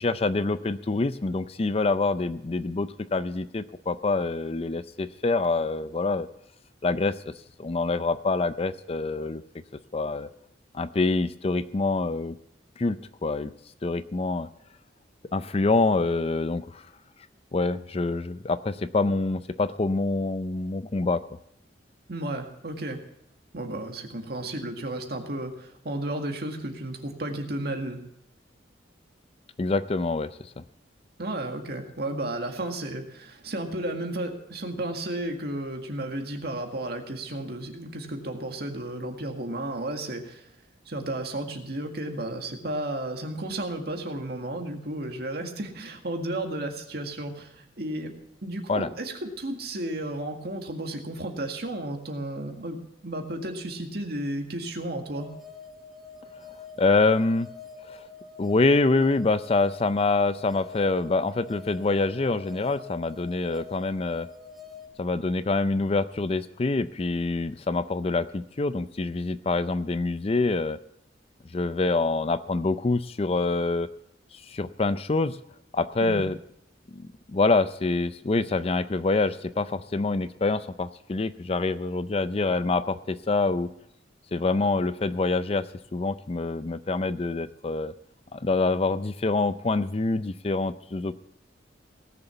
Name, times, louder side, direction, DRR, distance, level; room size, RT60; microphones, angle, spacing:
voice 1, 0.0-6.3 6.8-7.3 7.6-9.4 9.9-10.3 10.7-12.4 12.8-13.5 13.8-14.5 15.3-16.8 17.5-21.2 29.6-30.3 48.7-48.9 56.8-57.5 57.9-58.0 58.4-64.3 65.0-70.8 71.5-73.9 74.3-75.4 75.7-76.4 76.9-83.7 84.3-85.7 85.9-87.9 88.3-91.1, left 3 dB, 35° left, 13 dB, 0.5 m, -26 dB
voice 2, 22.1-23.0 23.5-28.0 31.2-40.5 40.9-48.1 48.4-55.3 76.0-76.2, right 1 dB, 60° right, 4 dB, 1.9 m, -33 dB
sound 1, 55.1-64.9, left 5 dB, ahead, 1.6 m, -46 dB
18.0 x 7.0 x 6.9 m, 0.74 s
head